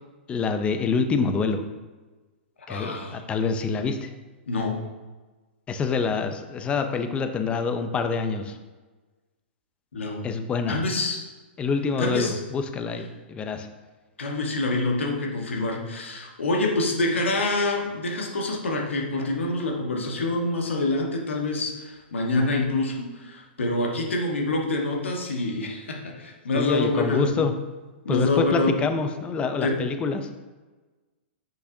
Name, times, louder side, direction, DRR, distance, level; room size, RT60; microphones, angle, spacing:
voice 1, 0.3-1.6 2.7-4.1 5.7-8.6 10.2-10.8 11.6-13.7 26.5-27.5 28.1-30.3, left 5 dB, 15° left, 7 dB, 0.5 m, -26 dB
voice 2, 2.7-3.2 4.5-4.8 9.9-10.2 10.7-11.2 12.0-12.4 14.2-27.4 28.0-28.8 29.6-29.9, left 2 dB, 90° left, 1 dB, 1.3 m, -26 dB
6.3 x 5.6 x 2.7 m, 1.3 s
hypercardioid pair, 135°, 6 cm